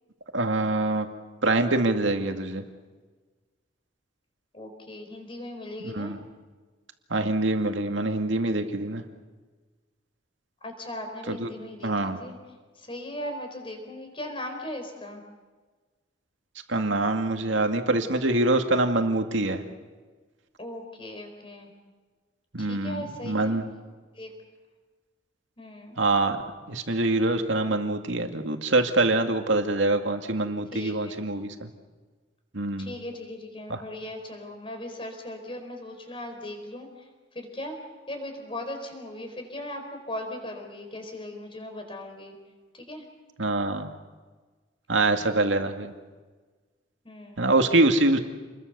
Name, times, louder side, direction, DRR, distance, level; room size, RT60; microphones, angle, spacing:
voice 1, 0.3-1.1 1.4-2.7 5.8-6.2 7.1-9.0 11.3-11.5 11.8-12.2 16.7-19.6 22.5-23.7 26.0-26.4 26.7-31.7 32.5-33.0 33.7-33.8 43.4-43.9 44.9-45.9 47.4-48.2, right 2 dB, 75° right, 5 dB, 2.2 m, -25 dB
voice 2, 4.5-6.1 10.6-12.4 12.8-15.2 20.6-21.7 22.6-23.6 24.1-24.3 25.6-26.0 30.7-31.3 32.8-36.9 37.3-37.8 38.1-42.4 42.7-43.1 47.0-47.4, left 1 dB, 30° left, 4 dB, 4.6 m, -38 dB
28.5 x 21.5 x 6.9 m, 1.4 s
head